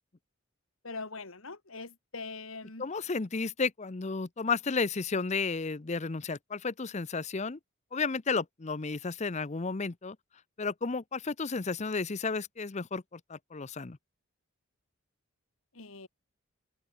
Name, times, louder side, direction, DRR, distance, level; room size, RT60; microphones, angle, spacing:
voice 1, 0.8-2.9 15.7-16.1, left 3 dB, 65° left, 2.6 m, -42 dB
voice 2, 2.8-7.6 7.9-10.2 10.6-14.0, left 4 dB, 30° left, 0.6 m, -32 dB
open air
head